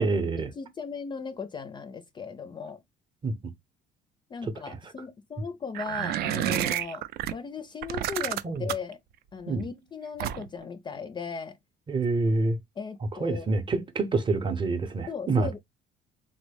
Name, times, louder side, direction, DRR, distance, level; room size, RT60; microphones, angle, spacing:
voice 1, 0.0-0.5 3.2-3.4 8.4-8.7 9.5-9.7 11.9-12.6 13.1-15.6, right 3 dB, 30° right, 0.7 m, -27 dB
voice 2, 0.6-2.8 4.3-7.1 7.3-9.0 9.3-11.6 12.8-13.6 15.1-15.6, left 5 dB, 30° left, 0.4 m, -37 dB
sound 1, 5.7-7.3 7.8-8.9 10.2-10.6, right 12 dB, 70° right, 0.4 m, -29 dB
3.7 x 2.0 x 3.2 m
cardioid pair, 110°, 17 cm